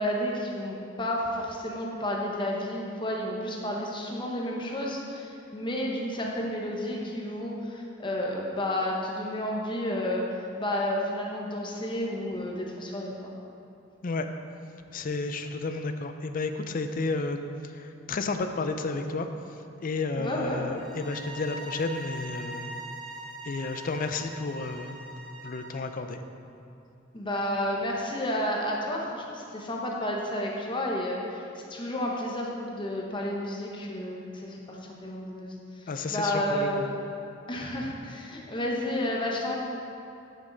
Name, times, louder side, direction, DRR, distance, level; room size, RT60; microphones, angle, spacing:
voice 1, 0.0-10.2 10.6-13.3 20.2-20.6 27.1-31.4 31.7-36.9 37.5-39.6, left 1 dB, 25° left, -2 dB, 0.9 m, -31 dB
voice 2, 14.9-17.4 17.7-19.3 19.8-22.7 23.4-25.0 25.4-26.2 35.9-36.8, left 3 dB, 45° left, 7 dB, 0.4 m, -31 dB
sound 1, 20.7-25.9, right 2 dB, 60° right, 1.2 m, -42 dB
9.1 x 6.3 x 3.9 m, 2.7 s
head